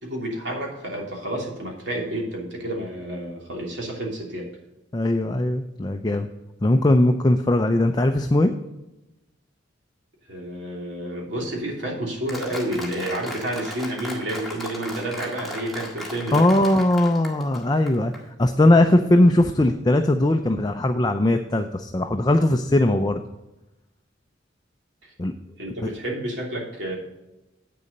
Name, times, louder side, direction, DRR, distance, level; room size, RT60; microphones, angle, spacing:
voice 1, 0.0-4.5 10.3-16.4 25.0-25.1 25.6-27.0, right 1 dB, 65° right, -1 dB, 2.9 m, -30 dB
voice 2, 4.9-6.3 6.6-8.5 16.3-18.1 18.4-23.2 25.2-25.3 25.8-25.9, left 1 dB, 20° left, 6 dB, 0.5 m, -19 dB
Applause, 12.3-18.2, left 1 dB, ahead, 1.8 m, -36 dB
8.6 x 6.9 x 5.2 m, 0.98 s
head